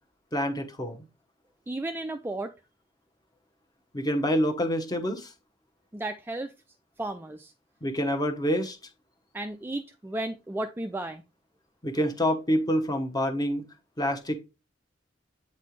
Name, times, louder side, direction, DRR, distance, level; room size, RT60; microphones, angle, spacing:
voice 1, 0.3-1.0 3.9-5.3 7.8-8.8 11.8-13.6 14.0-14.3, equal, 20° left, 1.0 m, -27 dB
voice 2, 1.7-2.5 5.9-6.5 7.0-7.5 9.3-11.2, right 2 dB, 10° right, 0.3 m, -34 dB
8.2 x 4.3 x 3.1 m
head